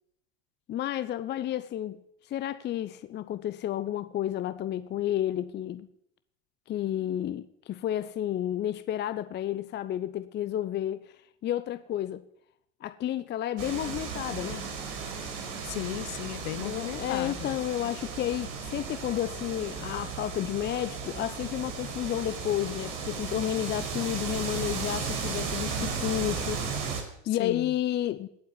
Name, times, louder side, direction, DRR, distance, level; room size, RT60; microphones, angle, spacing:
voice 1, 0.7-2.0 2.3-5.9 6.7-11.1 11.4-12.2 12.8-14.7 16.6-26.6 27.3-28.3, left 12 dB, 30° left, 0.9 m, -31 dB
sound 1, 13.6-27.0, right 5 dB, 50° right, 5.0 m, -35 dB
voice 2, 15.6-17.6 27.4-27.7, left 18 dB, 50° left, 1.2 m, -35 dB
18.5 x 8.1 x 9.6 m
hypercardioid pair, 85°, 36 cm